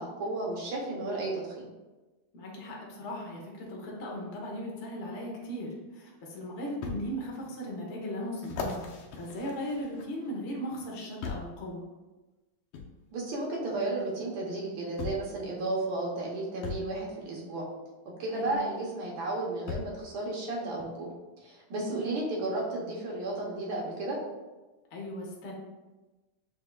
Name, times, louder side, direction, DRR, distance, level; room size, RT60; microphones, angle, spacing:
voice 1, 0.0-1.7 13.1-17.6 18.2-21.1 21.4-24.2, right 2 dB, 65° right, -3 dB, 1.7 m, -33 dB
voice 2, 2.3-11.8 18.3-18.6 21.7-22.0 24.9-25.5, equal, 55° left, -2 dB, 0.8 m, -37 dB
sound 1, 6.8-7.0 7.6-7.7 8.4-10.3 11.2-11.6 12.7-12.9 14.2-14.3 15.0-15.3 16.6-16.9 18.5-18.6 19.7-20.0 20.8-20.9, left 4 dB, 85° left, 1.6 m, -38 dB
6.7 x 3.4 x 2.2 m, 1.2 s
omnidirectional pair, 2.4 m